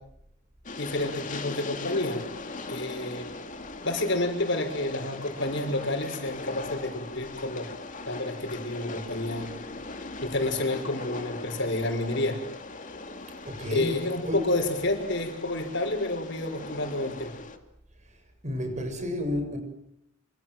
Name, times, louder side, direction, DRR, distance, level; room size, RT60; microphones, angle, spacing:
Train, 0.6-17.6, left 3 dB, 40° left, 2.6 m, -40 dB
voice 1, 0.8-2.2 2.7-3.3 3.8-7.7 8.1-9.5 10.2-12.4 13.7-17.3, left 2 dB, 65° left, 6.0 m, -29 dB
voice 2, 13.5-14.5 18.1-18.2 18.4-19.6, left 1 dB, 40° right, 7.1 m, -31 dB
27.0 x 26.5 x 7.8 m
head